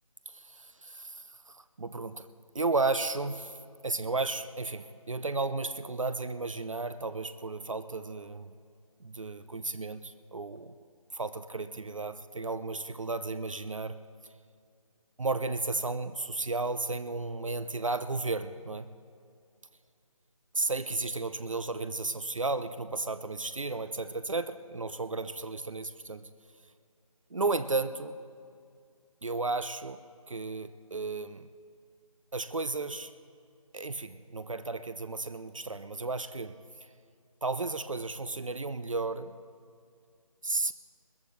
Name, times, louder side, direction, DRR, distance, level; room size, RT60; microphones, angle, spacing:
voice 1, 0.3-2.3 2.5-3.6 3.8-8.5 9.0-10.8 11.1-13.9 15.2-18.9 20.5-26.2 27.3-28.2 29.2-30.0 30.3-31.5 32.3-33.1 33.7-36.6 36.8-36.9 37.4-39.3 40.4-40.7, right 3 dB, 65° right, 12 dB, 0.7 m, -33 dB
21.5 x 18.5 x 3.2 m, 2.3 s
figure-of-eight pair, 155°, 18 cm